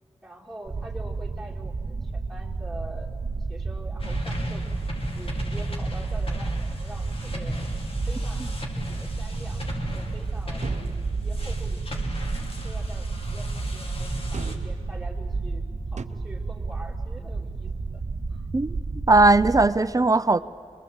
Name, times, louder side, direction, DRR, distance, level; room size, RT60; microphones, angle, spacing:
voice 1, 0.2-4.7 5.0-7.7 8.1-8.5 8.7-10.7 11.1-12.1 12.6-18.0 18.3-18.5, right 1 dB, ahead, -3 dB, 3.4 m, -45 dB
sound 1, 0.6-19.7, right 3 dB, 45° right, 0.9 m, -31 dB
sound 2, 4.0-14.6, left 1 dB, 50° left, 2.4 m, -36 dB
sound 3, 10.6-11.6 14.3-15.0 16.0-16.1, right 5 dB, 75° right, 0.6 m, -39 dB
voice 2, 19.1-20.4, right 2 dB, 30° right, 13 dB, 0.5 m, -18 dB
24.5 x 21.5 x 7.9 m, 2.3 s
wide cardioid pair, 95°, 12 cm